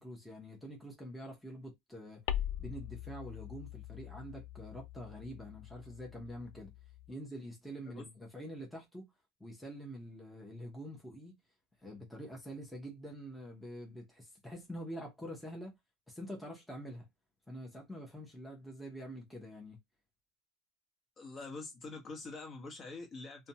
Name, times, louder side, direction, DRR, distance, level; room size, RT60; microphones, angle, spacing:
voice 1, 0.0-2.2 2.6-6.7 7.1-9.1 9.4-11.4 11.8-15.7 16.1-17.0 17.5-19.8, equal, ahead, 0.8 m, -46 dB
sound 1, 2.3-7.1, left 11 dB, 80° left, 0.3 m, -42 dB
voice 2, 21.2-23.5, left 3 dB, 35° left, 1.0 m, -45 dB
2.5 x 2.2 x 2.7 m
supercardioid pair, 125°, 0 cm